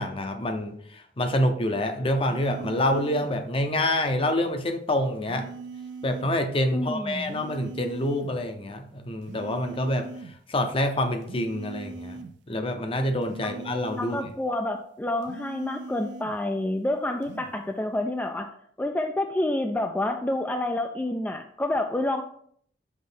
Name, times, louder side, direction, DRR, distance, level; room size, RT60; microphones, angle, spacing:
voice 1, 0.0-5.5 6.0-10.1 10.5-12.2 12.5-14.2, left 1 dB, 30° left, 6 dB, 0.7 m, -27 dB
sound 1, 2.2-3.4 5.2-6.4 7.2-8.4 9.2-10.4 11.2-12.4 13.2-14.4 15.2-16.4 17.2-17.5, right 4 dB, 85° right, 0.4 m, -41 dB
voice 2, 6.7-7.3 14.0-18.5 18.8-22.2, left 1 dB, 10° left, 4 dB, 0.3 m, -28 dB
6.0 x 3.2 x 5.4 m, 0.63 s
head